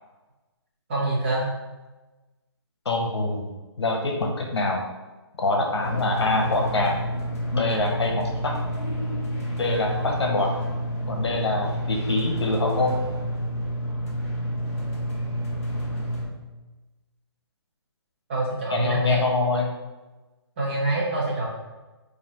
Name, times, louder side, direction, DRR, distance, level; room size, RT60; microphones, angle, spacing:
voice 1, 0.9-1.5 18.3-19.2 20.6-21.5, right 2 dB, 25° right, -6 dB, 0.8 m, -25 dB
voice 2, 2.8-4.8 5.4-7.0 7.5-8.5 9.6-10.5 11.1-13.0 18.7-19.7, left 2 dB, 70° left, 1 dB, 0.9 m, -25 dB
sound 1, 5.8-16.3, equal, 30° left, 0.9 m, -29 dB
3.1 x 2.5 x 4.1 m, 1.2 s
hypercardioid pair, 170°, 14 cm